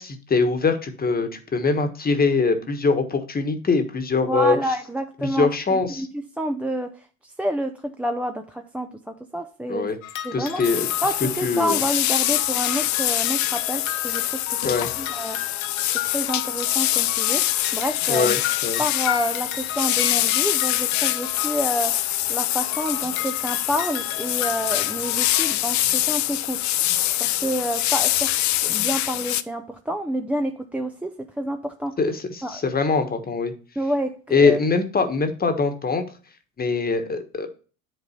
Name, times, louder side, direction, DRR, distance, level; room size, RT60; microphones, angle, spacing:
voice 1, 0.0-4.6 5.2-6.1 9.7-10.0 10.3-10.9 11.4-11.8 14.6-14.9 18.1-18.8 32.0-33.5 34.3-36.0 36.6-37.5, left 4 dB, 20° left, 7 dB, 1.3 m, -22 dB
voice 2, 4.3-7.1 7.4-9.9 10.2-10.6 11.0-15.4 15.9-18.4 18.8-22.0 22.3-26.6 27.2-28.3 28.6-31.9 32.4-32.6 33.8-34.6, right 1 dB, 5° right, 4 dB, 0.5 m, -28 dB
sound 1, 10.0-11.7 12.0-22.2 22.5-25.5, left 12 dB, 80° left, 1.0 m, -34 dB
sound 2, 10.6-29.4, left 15 dB, 45° left, 0.6 m, -24 dB
10.0 x 3.9 x 4.3 m, 0.37 s
hypercardioid pair, 85°, 41 cm